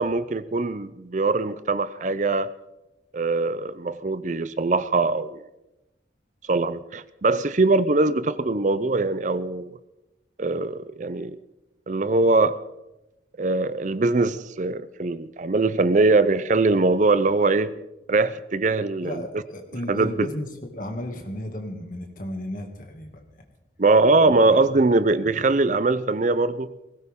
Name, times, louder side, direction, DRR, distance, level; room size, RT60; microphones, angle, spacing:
voice 1, 0.0-2.5 3.1-5.4 6.5-9.8 10.4-11.4 11.9-12.6 13.4-17.7 18.1-19.2 19.9-20.1 23.8-26.7, right 3 dB, 40° right, 0.5 m, -22 dB
voice 2, 19.0-23.4 24.2-24.3 24.7-24.9 25.1-25.4, left 1 dB, 45° left, 2.2 m, -35 dB
20.0 x 17.5 x 3.7 m
head